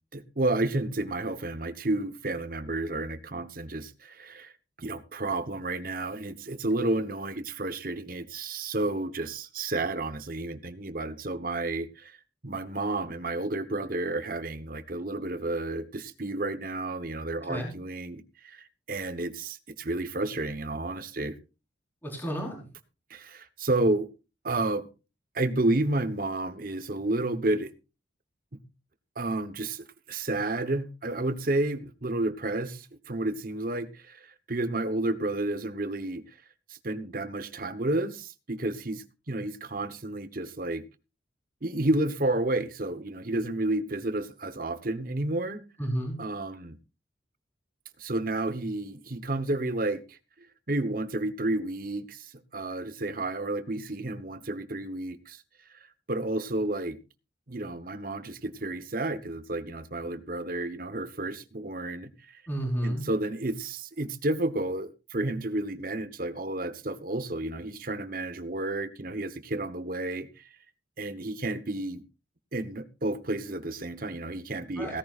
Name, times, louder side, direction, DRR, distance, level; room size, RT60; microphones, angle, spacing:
voice 1, 0.1-4.5 4.8-12.2 12.4-21.3 23.1-24.1 24.4-24.9 25.3-27.7 28.5-28.6 29.2-36.2 36.7-40.8 41.6-45.6 46.2-46.8 48.0-50.2 50.7-55.4 56.1-57.0 57.5-62.4 62.8-70.5 71.0-72.0 72.5-75.0, right 2 dB, 50° right, 1.1 m, -31 dB
voice 2, 17.4-17.8 22.0-22.6 45.8-46.2 62.5-63.1 74.8-75.0, equal, 10° left, 4.5 m, -31 dB
16.5 x 15.5 x 2.5 m
head